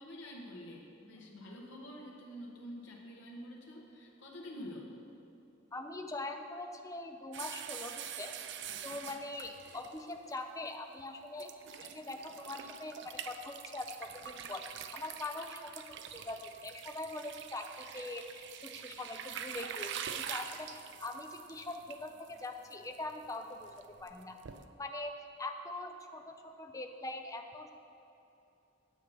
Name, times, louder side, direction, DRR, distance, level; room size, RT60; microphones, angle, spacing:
voice 1, 0.0-4.9, equal, 65° left, -2 dB, 1.5 m, -47 dB
voice 2, 5.7-8.3 8.8-11.5 11.8-14.6 14.9-24.4 24.8-27.7, left 2 dB, 15° left, 5 dB, 0.5 m, -43 dB
sound 1, 7.3-10.4 11.0-11.1 11.4-24.6, right 8 dB, 60° right, 0.5 m, -45 dB
9.5 x 7.7 x 5.4 m, 2.8 s
head